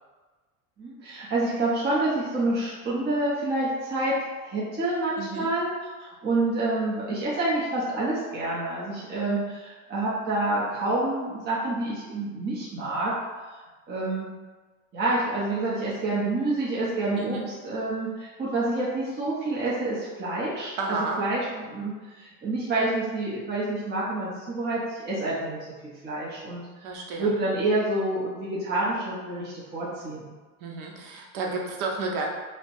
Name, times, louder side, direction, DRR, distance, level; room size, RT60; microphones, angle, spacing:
voice 1, 0.8-4.1 4.4-5.7 6.0-13.1 13.9-14.3 14.9-17.4 17.6-26.9 27.2-30.3, right 2 dB, 25° right, -7 dB, 0.7 m, -28 dB
voice 2, 5.2-5.5 17.1-17.5 20.8-21.2 26.8-27.3 30.6-32.3, right 3 dB, 55° right, 0 dB, 0.7 m, -31 dB
3.1 x 2.0 x 2.6 m, 1.3 s
supercardioid pair, 100°, 42 cm